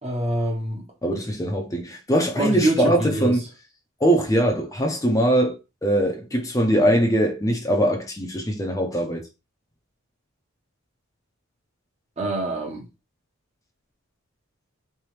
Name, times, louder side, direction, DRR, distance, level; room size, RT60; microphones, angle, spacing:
voice 1, 0.0-0.9 2.3-3.3 12.2-12.8, right 1 dB, 30° right, 1.0 m, -25 dB
voice 2, 1.0-3.4 4.0-5.6 5.8-9.2, right 1 dB, 15° left, 0.6 m, -21 dB
3.4 x 3.3 x 3.1 m
head